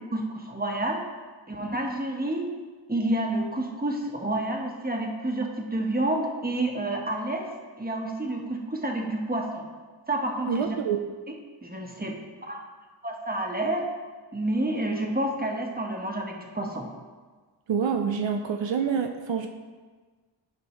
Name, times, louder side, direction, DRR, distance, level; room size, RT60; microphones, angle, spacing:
voice 1, 0.1-1.0 1.5-2.5 2.9-7.5 7.8-9.6 10.1-10.7 11.6-12.1 12.5-12.6 13.0-13.8 14.3-16.8, right 1 dB, 20° right, 0 dB, 1.3 m, -29 dB
voice 2, 10.4-11.0 17.7-19.5, right 6 dB, 75° right, 4 dB, 0.6 m, -26 dB
11.0 x 5.2 x 3.1 m, 1.4 s
cardioid pair, 45°, 45 cm